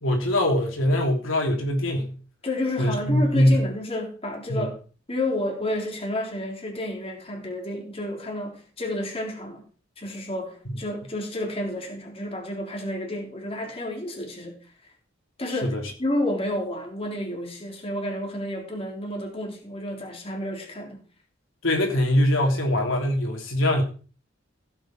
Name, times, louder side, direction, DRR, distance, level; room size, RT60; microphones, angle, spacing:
voice 1, 0.0-2.2 2.8-3.7 4.5-4.7 10.6-10.8 15.5-15.8 21.6-23.8, left 1 dB, 90° left, 3.2 m, -22 dB
voice 2, 2.4-4.8 5.1-9.7 10.0-14.6 15.4-21.0, left 1 dB, 30° left, 3.4 m, -30 dB
15.5 x 8.1 x 4.5 m
head